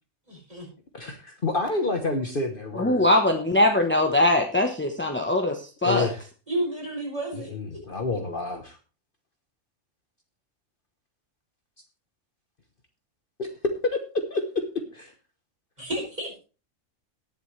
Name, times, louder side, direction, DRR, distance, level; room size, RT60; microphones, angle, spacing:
voice 1, 0.3-0.7 6.5-7.5 15.8-16.4, right 1 dB, 30° right, -3 dB, 6.9 m, -31 dB
voice 2, 0.9-3.1 5.8-6.2 7.5-8.8 13.4-13.5 14.3-14.6 14.9-15.1, left 3 dB, 45° left, 6 dB, 1.3 m, -29 dB
voice 3, 2.7-6.1, left 1 dB, 10° left, 4 dB, 1.0 m, -22 dB
19.0 x 7.4 x 3.2 m, 0.34 s
omnidirectional pair, 1.3 m